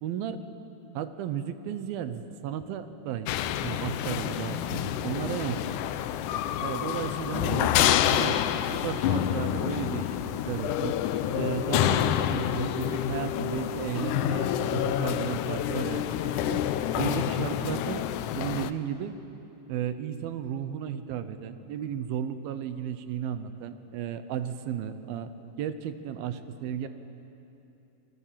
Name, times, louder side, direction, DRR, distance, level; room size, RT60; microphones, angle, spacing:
voice 1, 0.0-0.4 0.9-3.3 3.6-5.8 6.6-8.4 8.7-10.2 10.5-10.9 11.3-16.6 17.0-18.0 18.4-19.1 19.7-25.3 25.6-26.9, right 9 dB, 85° right, 10 dB, 2.8 m, -34 dB
sound 1, 3.3-18.7, left 11 dB, 75° left, 1.9 m, -28 dB
27.0 x 19.5 x 7.5 m, 2.9 s
omnidirectional pair, 4.2 m